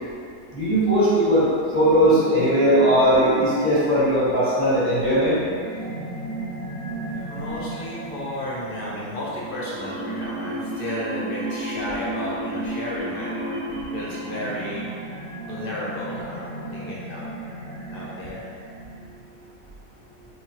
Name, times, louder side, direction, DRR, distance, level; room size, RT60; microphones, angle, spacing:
voice 1, 0.5-1.4 1.7-5.4, equal, 10° right, -12 dB, 1.1 m, -18 dB
sound 1, 1.3-19.3, right 2 dB, 60° right, 1.0 m, -34 dB
voice 2, 7.1-13.6 13.9-14.9 15.4-17.3 17.9-18.4, left 1 dB, 45° left, -6 dB, 0.9 m, -33 dB
4.7 x 2.8 x 2.9 m, 2.3 s
omnidirectional pair, 1.6 m